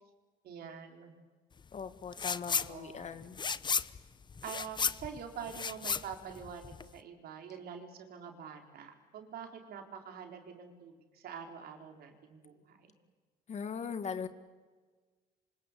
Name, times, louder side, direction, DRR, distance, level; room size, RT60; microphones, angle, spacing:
voice 1, 0.4-1.1 2.5-3.1 4.4-12.9, right 7 dB, 65° right, 3 dB, 4.5 m, -46 dB
voice 2, 1.7-3.4 13.5-14.3, left 6 dB, 40° left, 10 dB, 2.0 m, -40 dB
sound 1, 2.1-2.7 3.0-7.0, left 5 dB, 25° left, 0.8 m, -34 dB
27.5 x 25.5 x 8.5 m, 1.4 s
cardioid pair, 110°, 17 cm